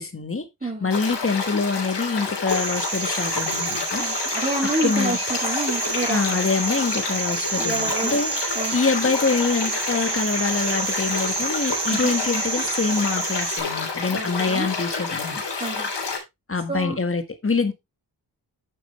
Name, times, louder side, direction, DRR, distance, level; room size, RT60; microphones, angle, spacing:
voice 1, 0.0-4.1 4.8-5.2 6.1-15.4 16.5-17.7, left 4 dB, 30° left, 1.7 m, -25 dB
voice 2, 0.6-1.0 4.0-6.5 7.6-8.2 8.5-8.8 11.9-12.1 14.1-14.7 15.6-15.9 16.7-17.0, right 2 dB, 20° right, 2.9 m, -29 dB
sound 1, 0.9-16.2, left 4 dB, 85° left, 3.2 m, -29 dB
sound 2, 2.5-13.6, right 4 dB, 55° right, 2.6 m, -29 dB
9.3 x 7.4 x 3.3 m
wide cardioid pair, 90°, 40 cm